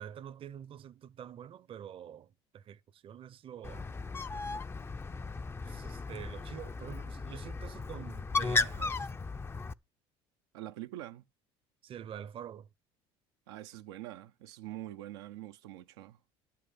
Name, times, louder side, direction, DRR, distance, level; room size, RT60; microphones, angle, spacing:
voice 1, 0.0-3.9 5.6-9.1 11.8-12.7, right 9 dB, 45° right, 0.8 m, -46 dB
Bird, 3.6-9.7, left 4 dB, 20° left, 0.6 m, -35 dB
voice 2, 10.5-11.2 13.5-16.2, right 14 dB, 90° right, 0.8 m, -44 dB
11.5 x 5.8 x 8.4 m
supercardioid pair, 95°, 13 cm